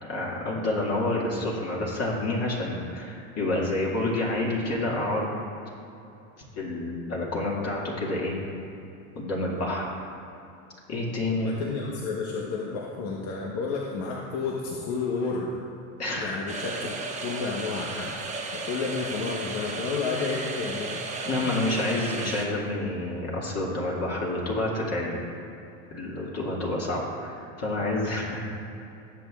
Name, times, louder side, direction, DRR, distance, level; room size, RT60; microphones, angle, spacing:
voice 1, 0.0-5.4 6.6-8.3 9.2-9.9 10.9-11.6 16.0-16.4 21.3-25.2 25.9-28.5, left 2 dB, 35° left, -4 dB, 2.1 m, -28 dB
voice 2, 11.3-15.7 16.2-18.4 18.6-21.0, left 4 dB, 60° left, -2 dB, 1.3 m, -31 dB
sound 1, 16.5-22.5, right 3 dB, 15° right, 1.2 m, -34 dB
18.5 x 7.2 x 2.4 m, 2.8 s
supercardioid pair, 105°, 42 cm